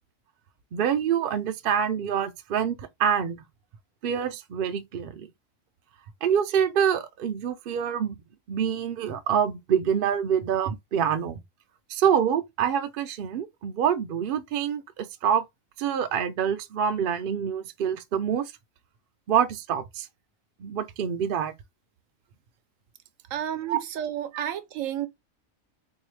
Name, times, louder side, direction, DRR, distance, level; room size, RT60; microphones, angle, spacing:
voice 1, 0.7-3.4 4.0-5.3 6.2-8.2 8.5-11.4 11.9-15.4 15.8-18.5 19.3-20.1 20.6-21.5 23.7-23.8 24.3-24.5, right 8 dB, 60° right, 0.6 m, -26 dB
voice 2, 23.3-25.1, right 10 dB, 80° right, 1.0 m, -31 dB
4.0 x 2.7 x 3.1 m
omnidirectional pair, 1.4 m